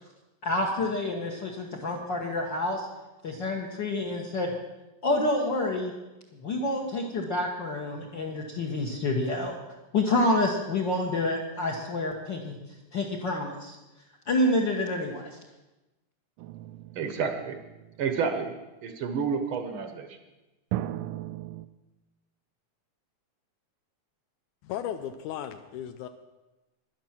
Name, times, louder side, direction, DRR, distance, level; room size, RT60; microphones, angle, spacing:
voice 1, 0.4-2.9 3.2-4.5 5.0-5.9 6.4-9.6 9.9-12.6 12.9-13.8 14.3-15.3, left 2 dB, 50° left, 0 dB, 1.4 m, -28 dB
sound 1, 16.4-18.2 20.7-21.7, right 14 dB, 90° right, 2.1 m, -37 dB
voice 2, 16.9-17.6 18.0-18.5 18.8-20.2, right 6 dB, 60° right, 7 dB, 1.4 m, -30 dB
voice 3, 24.6-26.1, left 10 dB, 85° left, 8 dB, 2.1 m, -35 dB
11.0 x 10.5 x 7.3 m, 1.0 s
omnidirectional pair, 3.5 m